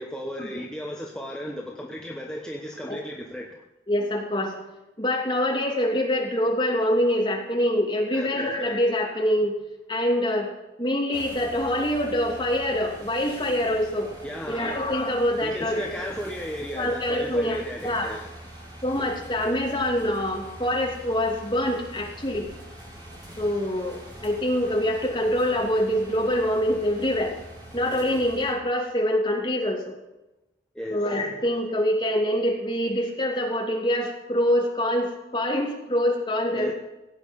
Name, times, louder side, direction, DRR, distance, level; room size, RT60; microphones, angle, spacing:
voice 1, 0.0-3.6 8.1-8.8 14.2-14.8 15.4-18.3 30.7-31.1 36.5-36.7, equal, 5° left, -1 dB, 1.1 m, -35 dB
voice 2, 3.9-4.5 5.0-9.6 9.9-10.5 10.8-14.1 14.5-16.0 16.7-17.6 17.8-18.1 18.8-22.5 23.4-27.4 27.7-29.9 30.9-36.7, left 1 dB, 25° left, 0 dB, 2.8 m, -25 dB
sound 1, 11.1-28.5, equal, 25° right, 3.9 m, -44 dB
16.5 x 9.0 x 5.4 m, 0.99 s
head